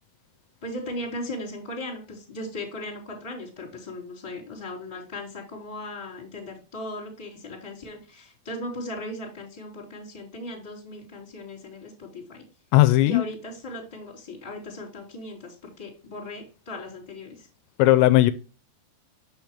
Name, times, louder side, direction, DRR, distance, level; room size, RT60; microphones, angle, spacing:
voice 1, 0.6-12.4 13.0-17.5, left 1 dB, 10° left, 3.0 m, -37 dB
voice 2, 12.7-13.2 17.8-18.3, left 16 dB, 85° left, 2.9 m, -17 dB
8.6 x 6.3 x 3.2 m
omnidirectional pair, 5.1 m